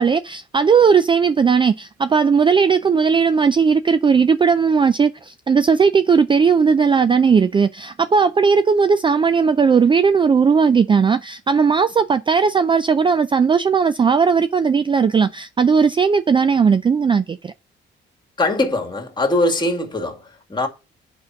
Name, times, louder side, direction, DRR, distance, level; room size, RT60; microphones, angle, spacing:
voice 1, 0.0-17.5, right 5 dB, 25° right, 0.4 m, -17 dB
voice 2, 18.4-20.7, left 2 dB, 20° left, 2.1 m, -21 dB
6.6 x 5.3 x 5.8 m
cardioid pair, 90°, 20 cm